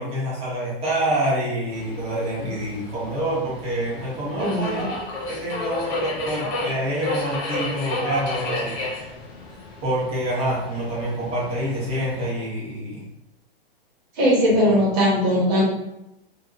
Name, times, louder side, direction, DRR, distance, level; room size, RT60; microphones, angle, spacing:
voice 1, 0.0-4.9 5.3-9.1 9.8-13.0 14.6-14.8, right 1 dB, 20° right, -6 dB, 1.0 m, -27 dB
Subway metro underground, 1.7-12.3, left 2 dB, 15° left, 0.3 m, -32 dB
voice 2, 4.4-4.8 14.2-15.6, equal, 45° right, -5 dB, 1.3 m, -19 dB
2.6 x 2.6 x 2.5 m, 0.87 s
hypercardioid pair, 130°, 31 cm